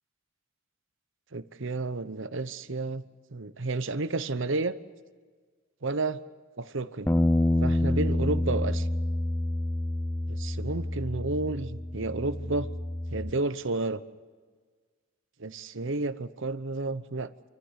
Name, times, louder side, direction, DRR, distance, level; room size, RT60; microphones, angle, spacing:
voice 1, 1.3-3.0 3.3-4.8 5.8-6.2 6.6-7.1 7.6-8.9 10.3-12.7 13.1-14.0 15.4-17.3, right 3 dB, 60° right, 13 dB, 0.9 m, -31 dB
Bass guitar, 7.1-13.3, left 1 dB, 10° left, 0.6 m, -28 dB
27.0 x 14.5 x 8.1 m, 1.5 s
head